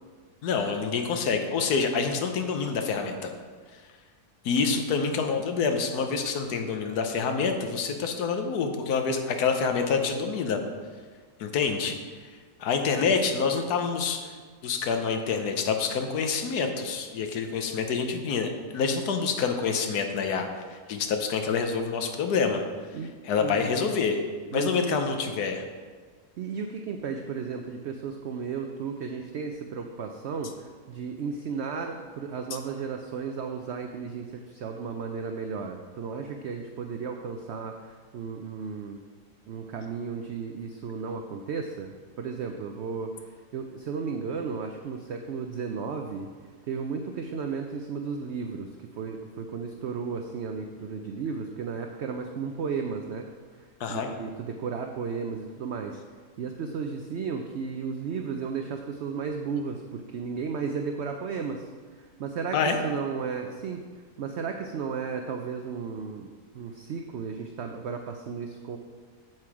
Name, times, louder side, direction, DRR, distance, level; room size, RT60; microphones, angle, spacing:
voice 1, 0.4-3.3 4.4-10.6 11.4-12.0 12.2-12.3 12.6-14.3 14.6-20.5 20.9-22.6 23.2-24.2 24.5-25.6 53.8-54.1 62.5-62.8, left 5 dB, 75° left, 5 dB, 1.4 m, -27 dB
voice 2, 23.4-23.9 24.5-25.0 26.4-39.0 39.5-46.3 46.7-48.7 49.0-53.3 53.5-56.0 56.4-63.8 64.2-68.8, right 5 dB, 65° right, 4 dB, 0.6 m, -34 dB
7.7 x 7.5 x 4.8 m, 1.6 s
omnidirectional pair, 1.7 m